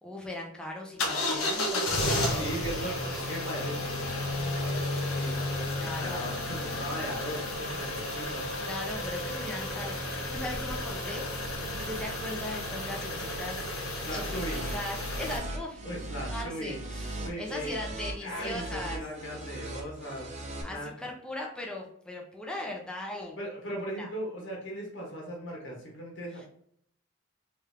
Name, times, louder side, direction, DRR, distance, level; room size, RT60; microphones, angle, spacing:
voice 1, 0.0-3.2 5.8-6.3 8.1-11.2 11.5-13.8 14.1-15.8 16.3-19.0 20.6-23.4 24.0-24.1 26.3-26.5, left 1 dB, 5° left, -1 dB, 0.7 m, -39 dB
sound 1, 1.0-15.4, left 1 dB, 85° left, 1.0 m, -32 dB
voice 2, 2.1-8.4 14.0-14.6 15.8-16.8 17.1-17.8 18.2-20.3 20.7-20.9 23.4-26.5, equal, 60° left, -2 dB, 1.4 m, -38 dB
sound 2, 14.0-20.6, right 1 dB, 35° right, 0.8 m, -39 dB
3.5 x 3.4 x 3.4 m, 0.66 s
head